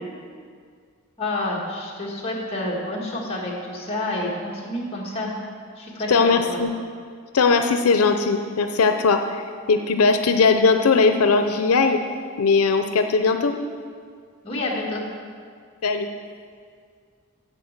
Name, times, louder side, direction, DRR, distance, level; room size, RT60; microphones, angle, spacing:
voice 1, 1.2-5.3 5.8-6.6 14.4-15.0, left 1 dB, 25° left, -3 dB, 1.7 m, -29 dB
voice 2, 6.1-6.7 7.3-9.4 9.7-12.0 12.4-13.5 15.8-16.1, left 4 dB, 90° left, 7 dB, 0.6 m, -19 dB
8.3 x 7.6 x 6.5 m, 2.1 s
head